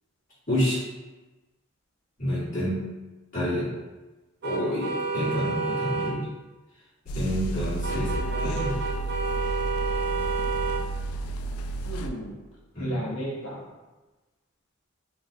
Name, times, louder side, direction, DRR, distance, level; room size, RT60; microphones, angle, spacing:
voice 1, 0.5-0.8 2.2-2.9 3.3-3.7 4.4-6.3 7.1-8.1 8.4-8.7 12.7-13.0, equal, 40° left, -11 dB, 1.4 m, -28 dB
sound 1, 4.4-6.1 7.8-10.8, right 4 dB, 50° right, 0.4 m, -30 dB
sound 2, 7.1-12.1, right 2 dB, 90° left, 0.3 m, -31 dB
voice 2, 7.9-9.1 11.8-12.4 12.8-13.7, right 1 dB, 70° left, -4 dB, 0.7 m, -36 dB
3.7 x 2.5 x 2.6 m, 1.1 s
head